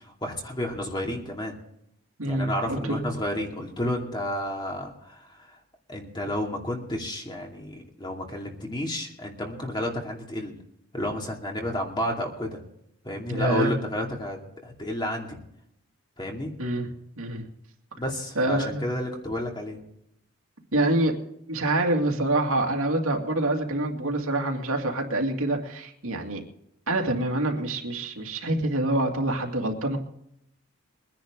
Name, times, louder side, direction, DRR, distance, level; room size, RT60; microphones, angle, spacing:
voice 1, 0.2-1.6 2.2-5.5 5.9-10.5 10.9-12.6 13.0-14.4 14.6-15.4 16.2-16.5 18.0-19.8, left 1 dB, 20° left, 1 dB, 2.5 m, -31 dB
voice 2, 2.2-3.1 13.3-13.7 16.6-16.9 17.2-17.5 18.4-18.9 20.7-21.1 21.5-26.4 26.9-30.0, right 1 dB, 75° right, 2 dB, 2.4 m, -26 dB
23.0 x 10.5 x 3.8 m, 0.77 s
head